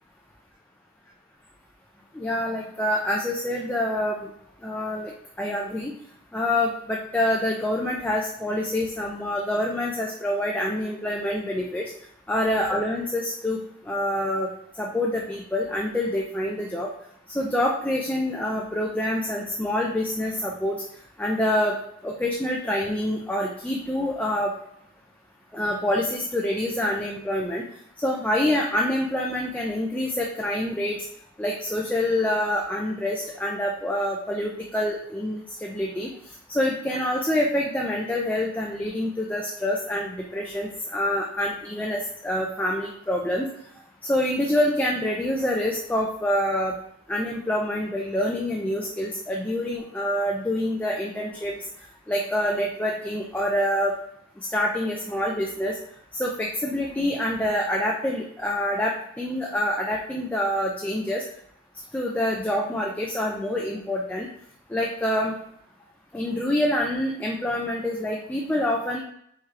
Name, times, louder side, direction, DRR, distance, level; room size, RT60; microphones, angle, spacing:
voice 1, 2.1-4.3 4.6-5.1 5.4-5.9 6.3-11.9 12.3-13.6 13.8-14.5 14.8-16.9 17.3-20.8 21.2-21.8 22.0-24.5 25.5-27.6 28.0-31.0 31.4-36.1 36.5-43.5 44.1-46.8 47.1-51.6 52.1-54.0 54.5-55.8 56.1-61.2 61.9-64.3 64.7-65.3 66.1-69.0, left 1 dB, 10° left, -2 dB, 0.4 m, -26 dB
4.8 x 4.2 x 2.4 m, 0.71 s
head